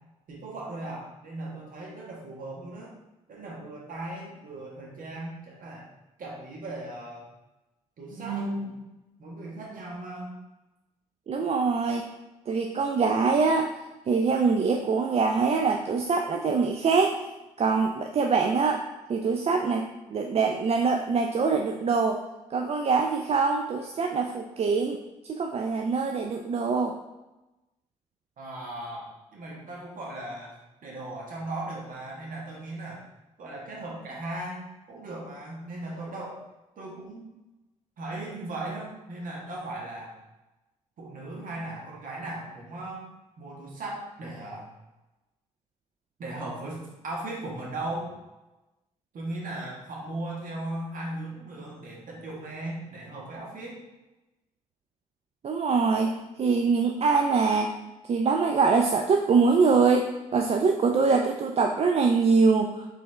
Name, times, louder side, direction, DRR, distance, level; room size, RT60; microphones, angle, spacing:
voice 1, 0.3-2.9 3.3-5.9 6.2-7.3 8.0-8.8 9.2-10.3 28.4-30.5 30.8-33.0 33.4-36.4 36.8-37.3 38.0-40.1 41.0-43.1 43.4-44.7 46.2-48.2 49.1-53.8, right 2 dB, 55° right, -2 dB, 1.3 m, -37 dB
voice 2, 11.3-12.0 12.5-13.7 14.1-17.2 17.6-18.8 19.1-22.2 22.5-25.0 25.3-27.0 55.4-56.1 56.4-57.7 58.1-62.9, right 4 dB, 40° right, 3 dB, 0.4 m, -24 dB
4.2 x 3.3 x 3.2 m, 1.0 s
hypercardioid pair, 45°, 16 cm